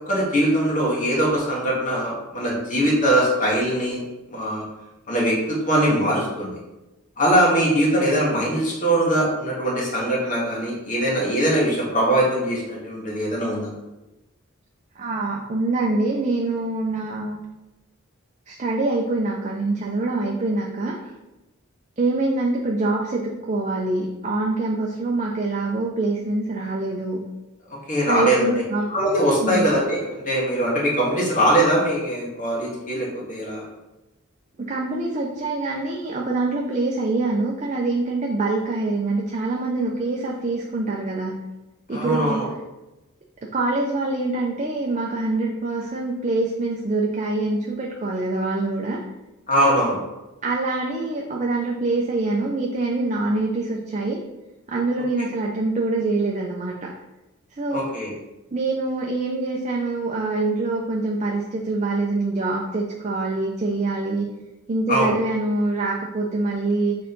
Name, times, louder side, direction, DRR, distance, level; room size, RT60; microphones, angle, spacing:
voice 1, 0.1-4.0 4.3-4.6 5.1-6.5 7.2-13.7 27.9-28.4 28.9-33.7 41.9-42.5 49.5-50.0 57.7-58.1 64.9-65.1, right 1 dB, 35° left, -4 dB, 1.8 m, -21 dB
voice 2, 15.0-17.4 18.5-20.9 22.0-27.2 28.1-28.9 29.4-29.7 34.6-41.4 41.9-42.4 43.4-49.0 49.6-49.7 50.4-54.2 54.7-56.9 57.6-57.9 58.5-64.3 64.7-67.0, right 2 dB, 35° right, -1 dB, 0.6 m, -25 dB
6.5 x 3.8 x 3.9 m, 1.0 s
head